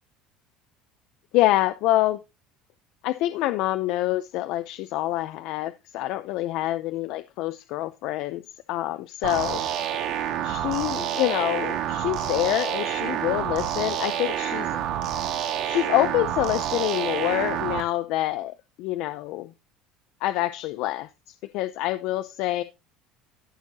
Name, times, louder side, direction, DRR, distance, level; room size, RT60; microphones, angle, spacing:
voice 1, 1.3-2.2 3.0-8.4 8.7-9.6 10.4-14.8 15.6-19.5 20.2-21.1 21.4-22.6, left 16 dB, 55° left, 0.6 m, -26 dB
sound 1, 9.2-17.8, right 10 dB, 55° right, 1.8 m, -28 dB
14.0 x 6.5 x 2.8 m
cardioid pair, 170°, 0 cm